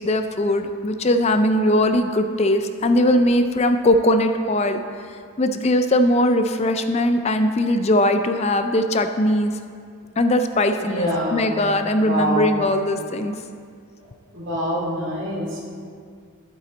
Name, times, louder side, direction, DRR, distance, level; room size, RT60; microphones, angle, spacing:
voice 1, 0.0-4.8 5.1-9.5 10.2-13.3, left 1 dB, 30° left, 8 dB, 0.4 m, -20 dB
voice 2, 10.8-11.5 12.0-12.6 14.3-15.7, equal, 60° right, -4 dB, 2.3 m, -25 dB
11.0 x 8.5 x 4.1 m, 2.2 s
head